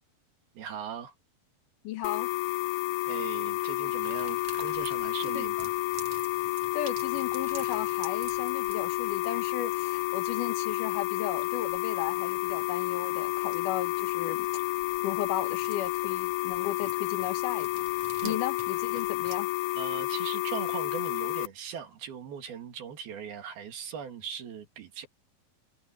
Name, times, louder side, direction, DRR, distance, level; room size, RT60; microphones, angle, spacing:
voice 1, 0.6-1.1 3.1-5.7 18.2-18.4 19.8-25.1, right 8 dB, 80° right, 4.4 m, -39 dB
voice 2, 1.8-2.3 5.3-5.4 6.7-14.5 15.0-17.9 18.2-19.5, left 12 dB, 70° left, 2.4 m, -35 dB
sound 1, 2.0-21.5, left 19 dB, 85° left, 2.5 m, -30 dB
sound 2, 3.8-19.4, right 8 dB, 55° right, 1.8 m, -50 dB
omnidirectional pair, 4.3 m